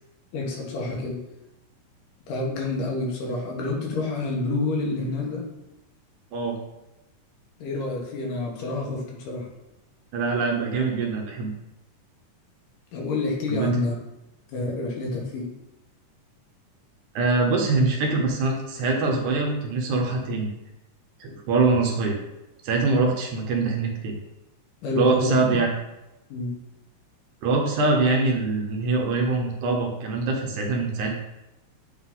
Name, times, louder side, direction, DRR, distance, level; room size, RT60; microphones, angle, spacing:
voice 1, 0.3-1.2 2.3-5.4 7.6-9.5 12.9-14.0 14.5-15.5 24.8-25.6 26.3-26.5, left 2 dB, 75° left, -2 dB, 2.8 m, -28 dB
voice 2, 10.1-11.5 13.5-13.7 17.2-20.5 21.2-22.2 22.6-24.2 25.0-25.7 27.4-31.1, right 3 dB, 70° right, 1 dB, 2.1 m, -23 dB
8.1 x 3.9 x 3.8 m, 0.93 s
omnidirectional pair, 3.9 m